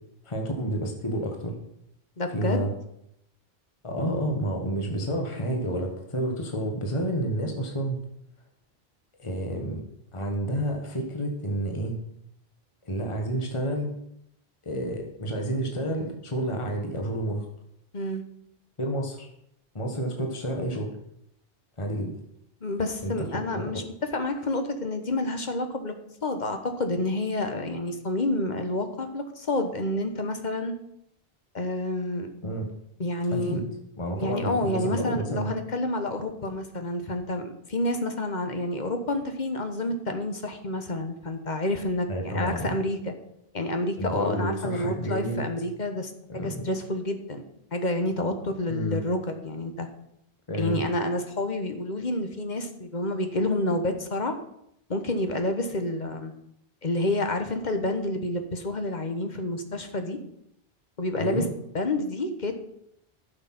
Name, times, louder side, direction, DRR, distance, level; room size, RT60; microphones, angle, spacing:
voice 1, 0.2-1.5 2.3-2.7 3.8-8.0 9.2-9.8 10.1-12.0 12.8-13.9 14.6-17.4 18.8-19.3 19.7-20.9 21.8-22.1 23.0-23.1 23.5-23.8 32.4-32.6 33.3-33.6 34.0-35.5 42.1-42.7 44.0-45.4 46.3-46.6 48.7-49.0 50.5-50.9 61.2-61.5, right 1 dB, 30° left, 3 dB, 1.5 m, -29 dB
voice 2, 2.2-2.6 17.9-18.2 22.6-23.8 24.1-25.9 26.2-30.7 31.5-32.3 33.0-33.6 34.2-43.1 43.5-47.4 47.7-49.9 50.6-54.3 54.9-56.3 56.8-60.2 61.0-61.5 61.7-62.6, left 2 dB, 45° left, 7 dB, 1.3 m, -29 dB
11.5 x 6.7 x 5.9 m, 0.76 s
omnidirectional pair, 1.0 m